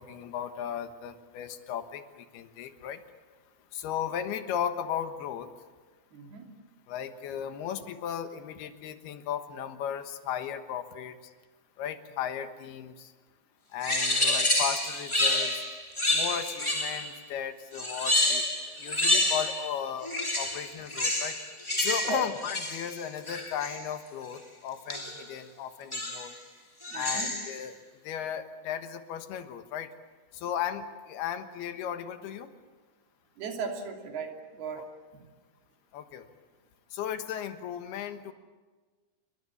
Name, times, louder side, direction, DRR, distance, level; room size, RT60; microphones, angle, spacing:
voice 1, 0.0-3.0 3.7-5.5 6.9-11.3 11.8-13.1 13.7-15.6 16.1-18.5 18.8-21.4 21.8-26.3 26.9-27.8 28.0-29.9 30.3-32.5 34.8-34.9 35.9-36.3 36.9-38.3, left 9 dB, 85° left, 8 dB, 3.4 m, -35 dB
voice 2, 6.1-6.5 22.0-22.2 26.9-27.3 33.4-34.9 35.1-35.2, right 5 dB, 80° right, 2 dB, 4.9 m, -37 dB
sound 1, 13.8-17.2 17.7-19.7 20.0-23.9 24.9-25.3 25.9-26.4 26.8-27.6, left 1 dB, 10° left, 2.4 m, -29 dB
28.5 x 22.5 x 7.3 m, 1.4 s
omnidirectional pair, 4.5 m